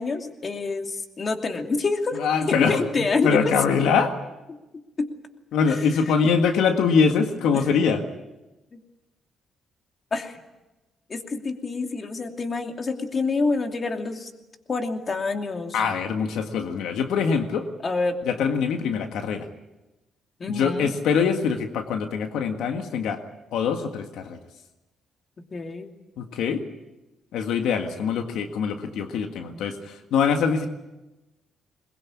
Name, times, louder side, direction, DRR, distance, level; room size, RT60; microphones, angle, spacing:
voice 1, 0.0-3.5 4.5-4.6 5.0-5.1 5.9-6.2 7.5-7.6 8.7-8.8 10.1-10.4 11.1-14.3 14.7-15.7 17.8-18.2 20.4-20.9 25.4-25.9, left 3 dB, 40° left, 4 dB, 2.7 m, -27 dB
voice 2, 2.2-2.8 3.2-4.1 5.5-8.0 15.7-17.7 18.3-19.5 20.5-23.2 23.5-24.4 26.2-26.6 27.3-30.7, left 6 dB, 85° left, 5 dB, 1.7 m, -23 dB
21.5 x 21.5 x 8.6 m, 1.1 s
cardioid pair, 90°, 0 cm